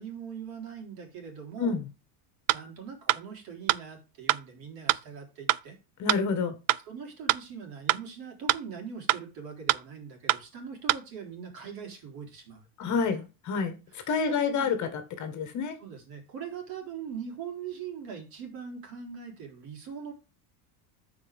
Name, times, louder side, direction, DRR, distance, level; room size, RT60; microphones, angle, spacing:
voice 1, 0.0-1.8 2.5-5.8 6.8-13.2 13.9-14.7 15.8-20.1, right 7 dB, 45° right, 4.2 m, -41 dB
sound 1, 2.5-2.6 3.1-3.2 3.7-3.8 4.3-4.4 4.9-5.0 5.5-5.6 6.1-6.2 6.7-6.8 7.3-7.4 7.9-8.0 8.5-8.6 9.1-9.2 9.7-9.8 10.3-10.4 10.9-11.0, right 17 dB, 80° right, 0.6 m, -23 dB
voice 2, 6.0-6.5 12.8-13.7 14.1-15.8, left 5 dB, 35° left, 1.7 m, -28 dB
14.0 x 5.0 x 3.6 m
cardioid pair, 150°, 48 cm